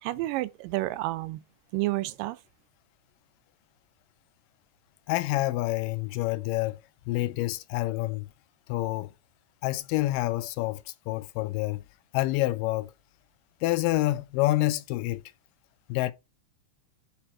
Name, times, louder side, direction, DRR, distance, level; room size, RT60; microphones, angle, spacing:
voice 1, 0.0-1.4 1.7-2.4, right 18 dB, 85° right, 2.3 m, -30 dB
voice 2, 5.1-6.8 7.1-8.3 8.7-9.1 9.6-11.8 12.1-12.9 13.6-15.2 15.9-16.1, left 17 dB, 85° left, 2.3 m, -27 dB
5.6 x 4.2 x 6.0 m
omnidirectional pair, 3.8 m